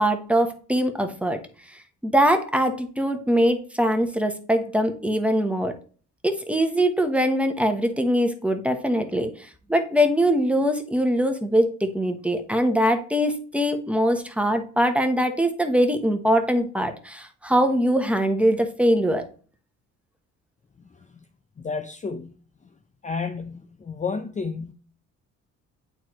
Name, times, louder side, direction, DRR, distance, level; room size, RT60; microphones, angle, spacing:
voice 1, 0.0-1.4 1.7-5.7 6.2-19.2, equal, 5° right, 1.1 m, -22 dB
voice 2, 21.6-22.3 23.0-24.7, left 5 dB, 25° left, 0.6 m, -31 dB
8.5 x 4.5 x 3.1 m
cardioid pair, 90°, 30 cm